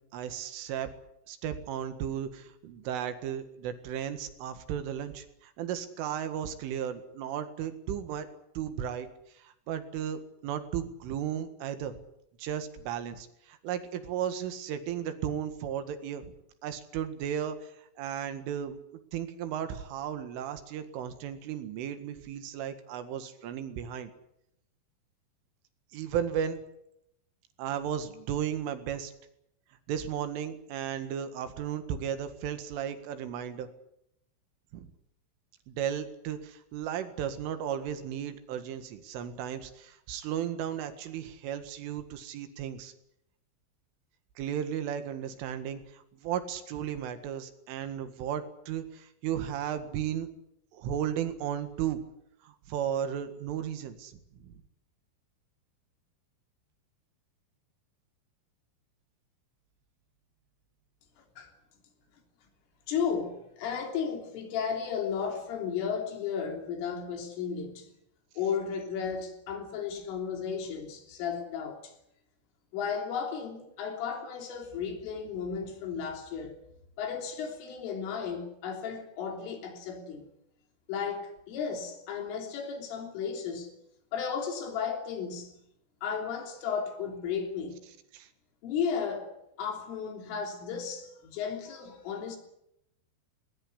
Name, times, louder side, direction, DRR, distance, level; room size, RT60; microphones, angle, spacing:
voice 1, 0.1-0.9 1.3-8.3 8.6-9.1 9.3-11.9 12.4-16.3 16.6-18.8 19.1-24.1 25.9-26.6 27.6-29.1 29.9-33.7 34.7-34.9 35.7-42.9 44.4-50.3 50.7-52.0 52.4-54.6 88.1-88.3, right 9 dB, 75° right, 4.3 m, -35 dB
voice 2, 61.2-61.5 62.9-67.9 68.4-71.9 72.7-76.6 77.0-80.2 80.9-83.7 84.1-85.6 86.0-87.8 88.6-92.4, left 6 dB, 75° left, 5.8 m, -34 dB
20.0 x 19.5 x 9.8 m
omnidirectional pair, 5.8 m